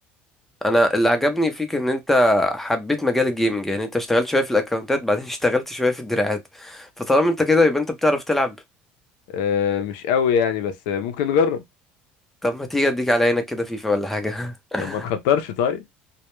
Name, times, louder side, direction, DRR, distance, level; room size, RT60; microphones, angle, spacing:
voice 1, 0.6-8.5 12.4-15.1, left 1 dB, 5° left, 0.6 m, -21 dB
voice 2, 9.3-11.6 14.8-15.8, left 7 dB, 85° left, 0.5 m, -22 dB
2.1 x 2.1 x 3.0 m
cardioid pair, 115°, 4 cm